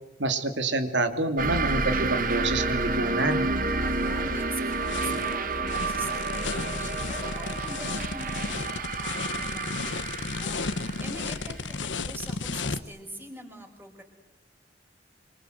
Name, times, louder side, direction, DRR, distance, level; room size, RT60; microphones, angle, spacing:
voice 1, 0.2-3.5, right 2 dB, 80° right, 8 dB, 2.7 m, -27 dB
sound 1, 1.4-12.6, right 3 dB, 45° right, 1.5 m, -30 dB
sound 2, 3.7-12.8, left 4 dB, 85° left, 1.2 m, -34 dB
voice 2, 3.8-14.0, right 1 dB, 10° right, 3 dB, 5.0 m, -43 dB
26.0 x 25.5 x 8.0 m, 1.0 s
head